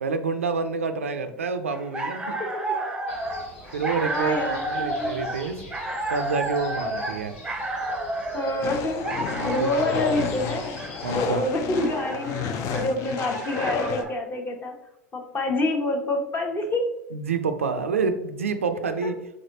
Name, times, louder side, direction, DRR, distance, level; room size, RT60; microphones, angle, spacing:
voice 1, 0.0-2.4 3.7-5.6 6.1-7.3 9.3-9.7 11.0-11.5 17.1-19.2, right 5 dB, 85° right, 8 dB, 0.3 m, -28 dB
sound 1, 1.7-14.2, right 1 dB, 10° right, 0.6 m, -32 dB
sound 2, 3.1-11.3, left 2 dB, 70° left, 1.0 m, -44 dB
voice 2, 4.0-5.1 8.3-10.7 11.1-12.4 12.7-14.8 15.1-16.9 19.0-19.1, left 1 dB, 30° left, 3 dB, 0.9 m, -27 dB
sound 3, 8.6-14.0, left 6 dB, 50° left, 0.4 m, -31 dB
3.7 x 3.3 x 2.7 m, 0.87 s
hypercardioid pair, 80°, 7 cm